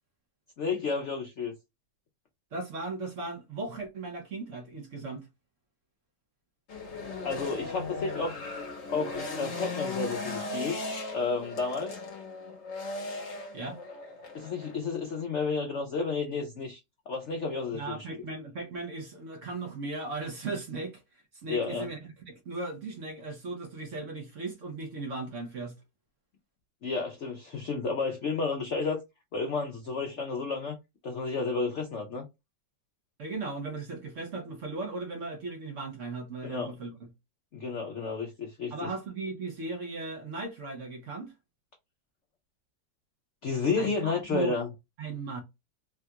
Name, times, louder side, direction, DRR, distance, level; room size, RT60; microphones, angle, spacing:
voice 1, 0.6-1.5 7.2-8.4 8.9-10.7 11.1-11.9 14.3-16.8 17.1-18.1 21.5-21.9 26.8-29.0 29.3-30.8 31.0-32.3 36.4-36.7 37.5-38.9 43.4-44.7, left 4 dB, 70° left, 0.6 m, -31 dB
voice 2, 2.5-5.3 13.5-13.8 17.7-25.7 33.2-37.0 38.7-41.3 43.8-44.5 45.0-45.4, right 3 dB, 55° right, 0.9 m, -37 dB
sound 1, 6.7-14.8, left 3 dB, 50° left, 1.0 m, -37 dB
3.5 x 2.3 x 2.8 m
omnidirectional pair, 1.9 m